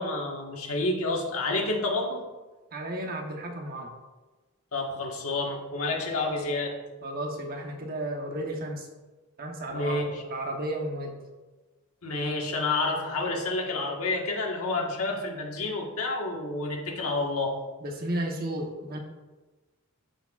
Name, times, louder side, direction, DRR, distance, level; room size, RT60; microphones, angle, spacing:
voice 1, 0.0-2.2 4.7-6.8 9.7-10.1 12.0-17.6, left 2 dB, 70° left, 0 dB, 1.5 m, -29 dB
voice 2, 2.7-3.9 7.0-8.9 9.4-11.2 17.8-19.0, right 1 dB, 45° right, 2 dB, 1.0 m, -33 dB
13.5 x 4.6 x 2.4 m, 1.2 s
head